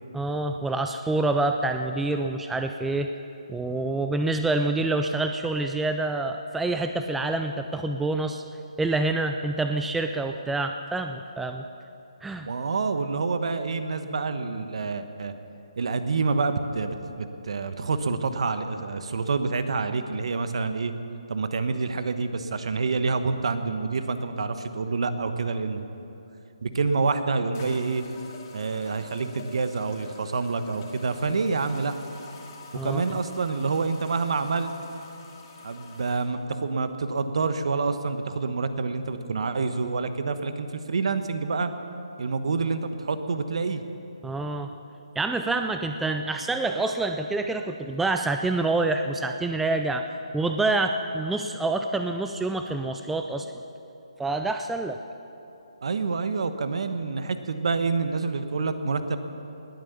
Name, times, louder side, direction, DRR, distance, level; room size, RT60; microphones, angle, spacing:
voice 1, 0.1-3.1 3.5-8.4 8.8-11.6 12.2-12.5 32.7-33.2 44.2-44.7 45.2-50.0 50.3-53.5 54.2-55.0, right 2 dB, 5° right, 6 dB, 0.3 m, -27 dB
voice 2, 12.4-15.3 15.8-20.9 21.3-25.8 26.6-28.0 28.5-31.9 32.8-34.7 35.6-41.7 42.2-43.8 55.8-59.2, right 4 dB, 60° right, 9 dB, 1.1 m, -27 dB
sound 1, 26.7-26.8 27.5-36.3, left 4 dB, 30° left, 2.3 m, -47 dB
19.5 x 9.1 x 6.9 m, 2.9 s
hypercardioid pair, 155°, 3 cm